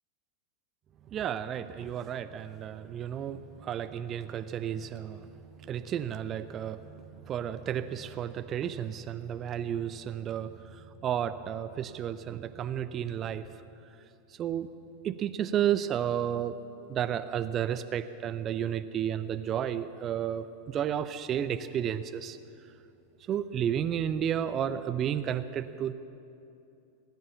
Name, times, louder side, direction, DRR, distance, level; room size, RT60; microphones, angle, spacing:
voice 1, 1.1-13.4 14.4-14.7 15.0-16.6 16.9-22.4 23.3-25.9, right 9 dB, 30° right, 12 dB, 0.6 m, -32 dB
19.0 x 9.3 x 6.9 m, 2.7 s
figure-of-eight pair, 90°, 0 cm